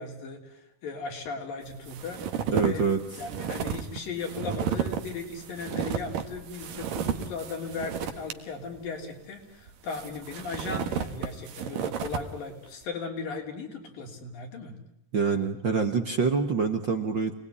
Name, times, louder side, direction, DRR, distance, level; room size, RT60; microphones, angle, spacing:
voice 1, 0.0-2.9 3.2-14.7, left 4 dB, 90° left, 2 dB, 5.3 m, -37 dB
sound 1, 1.7-8.3 8.8-8.9 9.7-12.3, right 8 dB, 75° right, 3.2 m, -33 dB
voice 2, 2.5-3.0 15.1-17.3, right 5 dB, 50° right, 6 dB, 1.4 m, -25 dB
28.5 x 20.0 x 9.8 m, 0.73 s
omnidirectional pair, 3.9 m